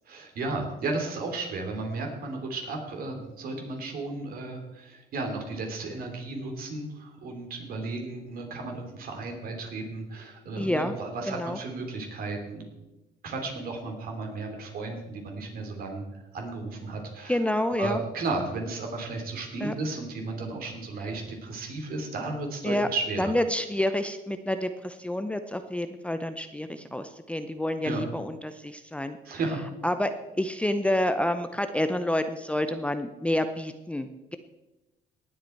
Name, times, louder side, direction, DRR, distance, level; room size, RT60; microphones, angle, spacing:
voice 1, 0.1-12.7 13.2-16.0 16.3-17.4 17.8-23.3 27.8-28.0 29.2-29.6, right 3 dB, 60° right, 3 dB, 3.2 m, -34 dB
voice 2, 10.6-10.9 11.3-11.6 17.3-18.0 19.6-19.7 22.6-22.9 23.2-29.2 29.8-34.4, left 1 dB, 5° left, 9 dB, 0.6 m, -28 dB
18.0 x 8.1 x 4.5 m, 1.0 s
cardioid pair, 110°, 17 cm